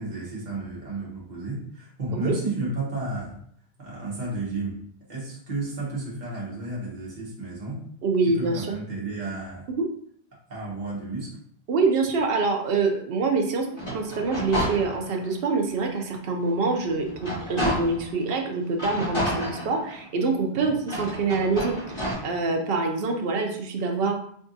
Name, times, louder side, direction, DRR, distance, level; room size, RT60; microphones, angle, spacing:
voice 1, 0.0-3.3 3.8-4.8 5.1-7.8 8.2-9.7 10.5-11.4 20.5-20.7, right 2 dB, 40° right, -5 dB, 1.3 m, -32 dB
voice 2, 8.0-8.7 9.7-9.9 11.7-13.7 13.9-24.1, right 3 dB, 60° right, 3 dB, 0.8 m, -25 dB
sound 1, 13.7-15.3 15.8-15.9 16.4-18.1 18.7-20.2 20.8-22.1, equal, 25° left, 1.6 m, -31 dB
3.6 x 3.5 x 2.7 m, 0.63 s
omnidirectional pair, 1.2 m